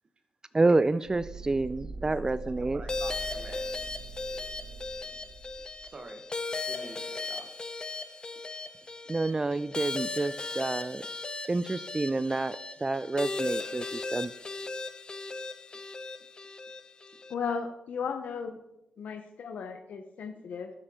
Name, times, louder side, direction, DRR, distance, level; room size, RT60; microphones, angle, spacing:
voice 1, 0.5-2.8 9.1-11.0 11.5-14.3, right 2 dB, 25° right, 16 dB, 0.4 m, -28 dB
sound 1, 1.0-5.9, right 3 dB, 80° right, 1.7 m, -43 dB
voice 2, 2.1-3.7 5.8-6.3 6.7-7.5 8.3-8.4 16.2-16.3 17.1-17.2, right 3 dB, 45° right, 5 dB, 1.4 m, -47 dB
sound 2, 2.9-17.3, left 3 dB, 35° left, 0.7 m, -37 dB
voice 3, 17.3-18.6 19.0-20.7, left 6 dB, 75° left, 6 dB, 0.8 m, -35 dB
13.0 x 7.8 x 3.7 m, 0.90 s
cardioid pair, 65°, 3 cm